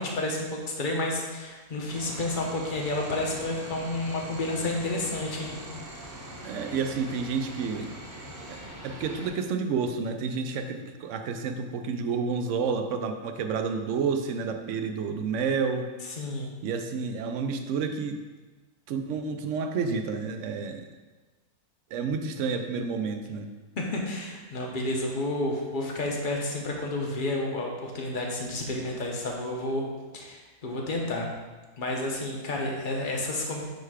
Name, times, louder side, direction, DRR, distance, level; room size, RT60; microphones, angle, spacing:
voice 1, 0.0-5.6 16.2-16.5 23.8-29.8 30.1-31.3 31.8-33.6, left 2 dB, 40° left, 0 dB, 0.9 m, -30 dB
sound 1, 1.9-9.3, right 1 dB, 15° right, 0.8 m, -42 dB
voice 2, 6.4-7.9 8.5-8.6 8.8-15.9 16.6-18.2 18.9-20.8 21.9-23.5, right 5 dB, 65° right, 6 dB, 0.8 m, -30 dB
6.4 x 3.3 x 4.8 m, 1.3 s
omnidirectional pair, 1.6 m